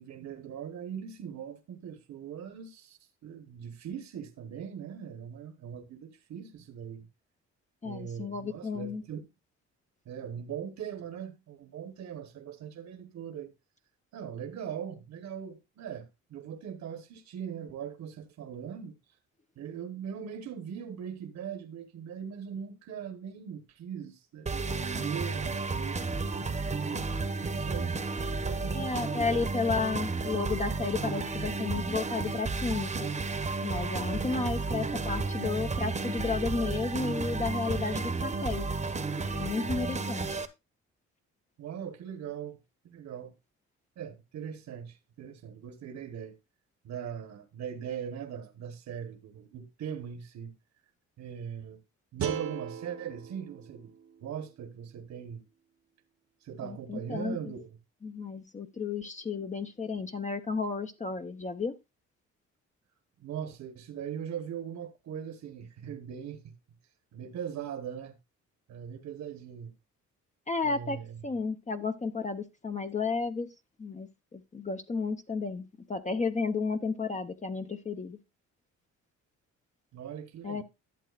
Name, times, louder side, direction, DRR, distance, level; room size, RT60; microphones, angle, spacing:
voice 1, 0.0-7.1 7.8-9.3 10.0-13.5 14.1-19.0 19.6-26.0 26.7-28.0 28.4-28.9 41.6-42.6 42.8-43.3 44.0-46.4 46.8-50.5 51.2-51.8 52.1-53.9 54.2-55.5 56.4-57.8 63.2-66.5 67.1-68.2 68.7-69.7 70.6-71.2 79.9-80.6, right 8 dB, 65° right, 1.2 m, -40 dB
voice 2, 7.8-9.0 28.7-33.1 33.6-38.6 39.3-40.4 56.6-57.5 58.0-61.7 70.5-73.5 73.8-78.2 80.4-80.6, left 4 dB, 25° left, 0.8 m, -33 dB
sound 1, 24.5-40.5, right 3 dB, 25° right, 1.0 m, -32 dB
sound 2, 52.2-55.3, right 8 dB, 50° right, 0.9 m, -39 dB
12.0 x 7.5 x 2.4 m
cardioid pair, 90°, 30 cm